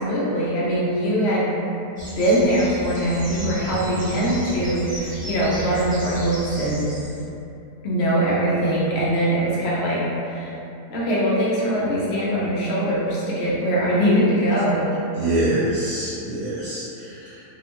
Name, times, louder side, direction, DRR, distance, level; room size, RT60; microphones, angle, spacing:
voice 1, 0.0-1.5 2.0-6.9 7.8-10.6 10.9-14.9, right 1 dB, 75° left, -7 dB, 0.5 m, -22 dB
sound 1, 2.0-7.2, equal, 10° right, 0.6 m, -35 dB
voice 2, 15.1-17.4, right 1 dB, 70° right, -11 dB, 1.0 m, -25 dB
2.7 x 2.1 x 2.8 m, 2.8 s
omnidirectional pair, 1.6 m